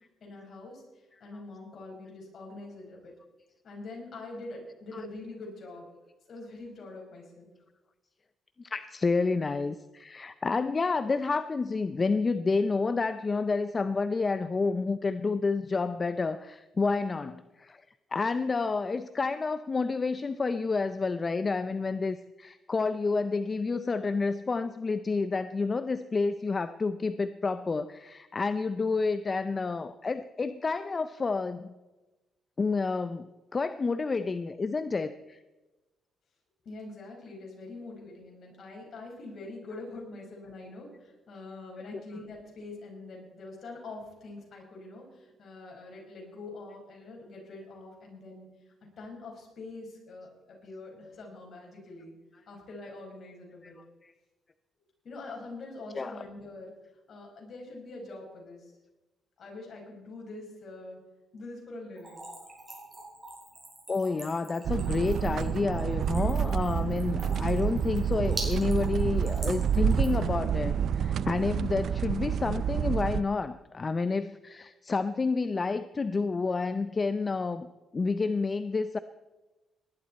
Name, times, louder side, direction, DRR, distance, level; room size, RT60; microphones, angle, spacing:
voice 1, 0.2-0.8 1.2-3.1 3.6-5.9 6.3-7.5 36.7-48.6 49.0-52.1 52.5-53.8 55.0-56.7 57.1-58.7 59.4-61.0 61.3-62.3, left 2 dB, 55° left, 0 dB, 5.2 m, -44 dB
voice 2, 8.6-17.8 18.1-31.7 32.6-35.4 39.7-39.8 41.9-42.2 53.6-53.7 54.0-54.1 55.9-56.2 63.9-77.7 77.9-79.0, left 4 dB, 30° left, 12 dB, 0.5 m, -29 dB
Splash splatter / Trickle dribble, 62.0-70.3, right 2 dB, 20° right, 6.0 m, -43 dB
sound 1, 64.6-73.2, right 8 dB, 65° right, 0.4 m, -28 dB
19.0 x 11.5 x 4.3 m, 1.1 s
cardioid pair, 90°, 0 cm